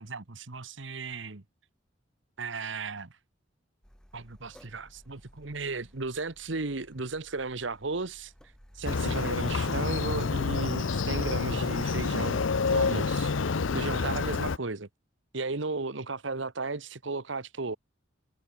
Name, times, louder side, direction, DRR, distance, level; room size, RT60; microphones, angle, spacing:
voice 1, 0.0-1.4 2.4-3.1 4.1-8.3 8.7-13.3 13.7-14.9 15.3-17.8, right 3 dB, 75° right, 1.4 m, -35 dB
Car, 3.8-11.1, equal, 5° left, 2.1 m, -56 dB
Motorcycle, 8.8-14.6, left 4 dB, 85° left, 0.7 m, -28 dB
head